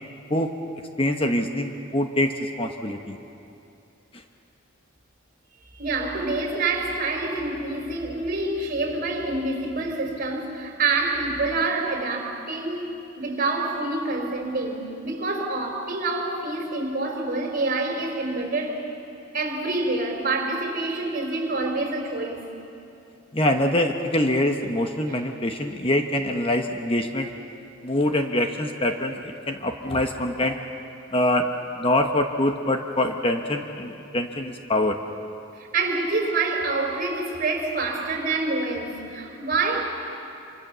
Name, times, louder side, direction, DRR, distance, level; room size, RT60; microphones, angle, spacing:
voice 1, 1.0-3.2 23.3-27.3 27.8-30.6 31.1-31.5 31.8-35.0, left 1 dB, 25° left, 5 dB, 1.1 m, -24 dB
voice 2, 5.7-18.8 19.3-22.5 25.1-25.2 35.6-39.9, right 3 dB, 45° right, 2 dB, 4.0 m, -27 dB
26.0 x 25.5 x 6.9 m, 2.7 s
head